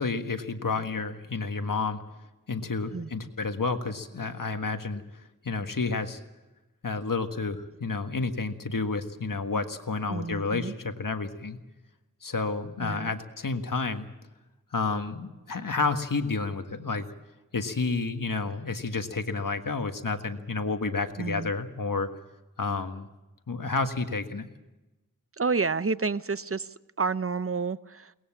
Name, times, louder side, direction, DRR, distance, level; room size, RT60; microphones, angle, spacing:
voice 1, 0.0-2.0 2.5-6.2 6.8-11.6 12.2-14.1 14.7-17.1 17.5-22.1 22.6-23.1 23.5-24.5, left 4 dB, 70° left, 1.6 m, -30 dB
voice 2, 10.1-10.7 12.8-13.1 21.2-21.5 25.4-26.7 27.0-28.1, right 4 dB, 40° right, 0.7 m, -29 dB
22.5 x 19.5 x 7.3 m
wide cardioid pair, 65°, 33 cm